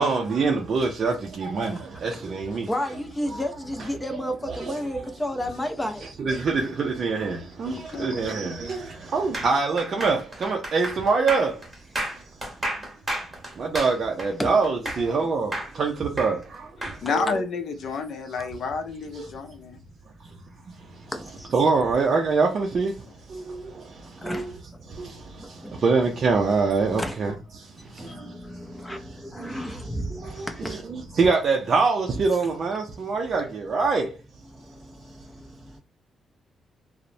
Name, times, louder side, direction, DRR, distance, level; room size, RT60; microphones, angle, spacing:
voice 1, 0.0-2.7 4.5-4.8 6.0-11.6 13.6-17.4 19.2-19.3 20.8-21.1 21.5-23.0 23.3-24.4 24.9-28.4 29.4-29.7 30.1-34.2, right 4 dB, 45° right, 0.4 m, -25 dB
voice 2, 2.6-6.1 14.4-14.5 14.8-15.6 21.1-21.5 24.1-24.8 25.4-25.8 27.0-27.2 27.8-30.8 34.5-35.8, left 1 dB, 10° left, 0.4 m, -33 dB
voice 3, 7.6-8.6 17.0-19.8 28.1-28.2, left 5 dB, 60° left, 0.5 m, -30 dB
sound 1, 9.3-15.2 15.5-17.0, right 1 dB, 15° right, 0.9 m, -32 dB
2.8 x 2.0 x 2.5 m
cardioid pair, 135°, 0 cm